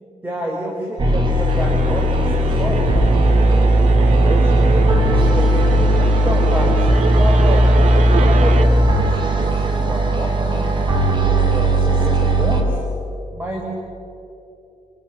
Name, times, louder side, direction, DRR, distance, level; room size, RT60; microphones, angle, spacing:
voice 1, 0.2-3.7 4.2-5.5 6.0-7.9 8.2-10.7 11.2-12.8 13.3-13.6, right 1 dB, 15° right, 0 dB, 4.3 m, -28 dB
sound 1, 1.0-12.6, right 1 dB, 40° right, 3.9 m, -16 dB
sound 2, 1.5-8.6, right 5 dB, 70° right, 2.1 m, -26 dB
28.0 x 26.5 x 7.7 m, 2.8 s
cardioid pair, 130°, 13 cm